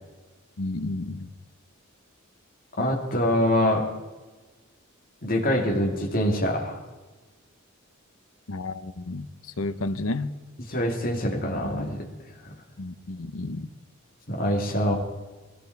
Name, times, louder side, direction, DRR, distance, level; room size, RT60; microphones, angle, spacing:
voice 1, 0.6-1.3 8.5-9.3 9.6-10.4 12.8-13.7, left 2 dB, 80° left, 0.9 m, -31 dB
voice 2, 2.8-3.8 5.2-6.8 10.7-12.1 12.5-12.6 14.3-15.0, equal, 45° left, 2.4 m, -24 dB
19.5 x 14.5 x 4.7 m
head